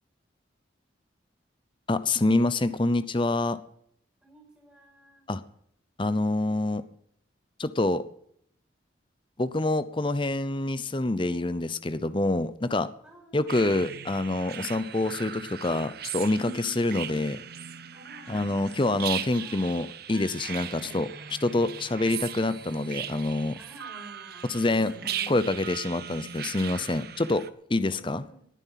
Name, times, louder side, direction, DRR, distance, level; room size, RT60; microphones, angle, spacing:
voice 1, 1.9-3.6 5.3-5.4 6.0-6.8 7.6-8.0 9.4-12.9 13.3-17.4 18.3-21.1 21.4-23.6 24.5-24.9 25.3-27.4 27.7-28.2, left 2 dB, 25° left, 14 dB, 0.7 m, -26 dB
voice 2, 4.2-5.2 13.0-14.1 17.9-19.0 19.4-19.9 20.6-21.1 23.6-25.6 27.8-28.5, right 1 dB, 5° right, 1 dB, 6.1 m, -52 dB
sound 1, 13.5-27.5, right 9 dB, 55° right, 0.9 m, -38 dB
19.5 x 9.6 x 5.8 m, 0.67 s
head